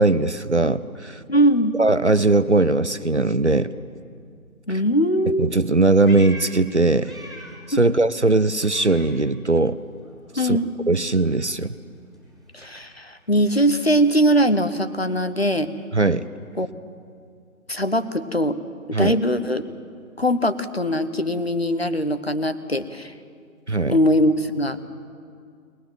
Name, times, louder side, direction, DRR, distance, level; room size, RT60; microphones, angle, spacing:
voice 1, 0.0-1.2 1.8-3.7 4.7-4.8 5.4-7.1 7.7-9.8 10.3-10.6 10.9-11.7 15.9-16.3 18.9-19.2 23.7-24.0, right 2 dB, 55° right, 15 dB, 0.6 m, -19 dB
voice 2, 1.3-1.8 4.7-5.5 7.7-8.0 10.4-10.7 12.5-15.7 16.6-16.7 17.7-18.6 18.9-19.6 20.2-23.1 23.9-24.8, equal, 45° left, 10 dB, 1.0 m, -21 dB
Meow, 5.6-7.7 8.0-9.7 10.0-14.2, left 1 dB, ahead, 2.5 m, -45 dB
21.0 x 20.5 x 7.8 m, 2.2 s
figure-of-eight pair, 170°, 43 cm